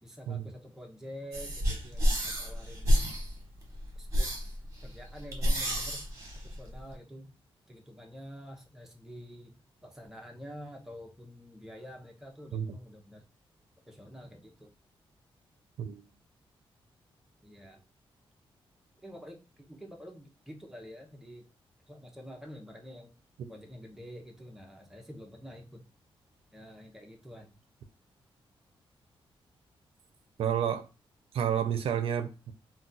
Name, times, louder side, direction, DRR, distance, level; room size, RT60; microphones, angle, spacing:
voice 1, 0.0-3.0 4.0-4.3 4.8-6.1 6.4-7.3 7.7-9.6 9.8-13.2 13.9-14.7 17.4-17.8 19.0-21.5 21.9-23.1 23.5-25.8 26.5-27.5, equal, 5° right, 0.5 m, -47 dB
sound 1, 1.3-6.9, equal, 30° right, 1.0 m, -30 dB
voice 2, 30.4-30.9 31.3-32.5, right 9 dB, 75° right, 0.4 m, -30 dB
2.3 x 2.1 x 3.9 m
wide cardioid pair, 160°, 10 cm